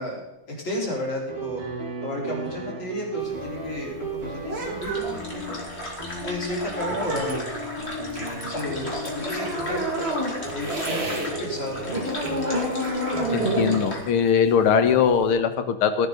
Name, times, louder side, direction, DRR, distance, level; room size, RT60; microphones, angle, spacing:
voice 1, 0.0-1.6 2.0-5.6 6.2-7.5 8.1-10.8 11.4-12.0, left 1 dB, 60° left, -3 dB, 4.6 m, -33 dB
sound 1, 1.3-13.6, right 2 dB, 75° right, 3.7 m, -35 dB
sound 2, 3.2-11.3 11.6-15.3, right 1 dB, 30° right, 2.4 m, -30 dB
sound 3, 4.8-14.1, equal, 30° left, 2.7 m, -36 dB
voice 2, 13.3-16.1, left 7 dB, 90° left, 9 dB, 2.0 m, -21 dB
17.5 x 11.0 x 3.9 m, 1.0 s
omnidirectional pair, 2.3 m